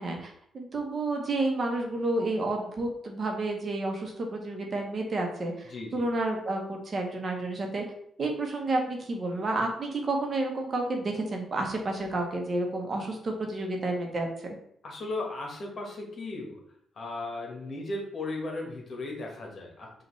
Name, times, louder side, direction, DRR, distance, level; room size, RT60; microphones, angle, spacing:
voice 1, 0.0-7.8 8.2-14.3, right 2 dB, 45° right, 2 dB, 1.0 m, -30 dB
voice 2, 5.7-6.1 14.8-16.6 16.9-20.0, left 2 dB, 50° left, 1 dB, 1.2 m, -36 dB
5.2 x 2.5 x 3.2 m, 0.67 s
cardioid pair, 85°, 0 cm